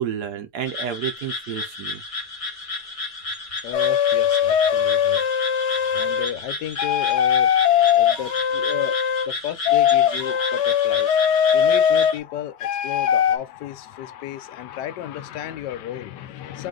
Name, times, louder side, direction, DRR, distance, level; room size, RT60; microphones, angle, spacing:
voice 1, 0.0-2.0, right 9 dB, 75° right, 1.3 m, -30 dB
sound 1, 0.7-12.2, left 2 dB, 25° left, 0.9 m, -32 dB
voice 2, 3.6-5.2 5.9-7.5 7.8-9.0 9.3-16.7, left 11 dB, 85° left, 1.2 m, -33 dB
sound 2, 3.7-6.3 6.8-9.3 9.6-12.1 12.6-13.4, left 9 dB, 70° left, 0.7 m, -20 dB
3.8 x 2.7 x 3.7 m
omnidirectional pair, 1.8 m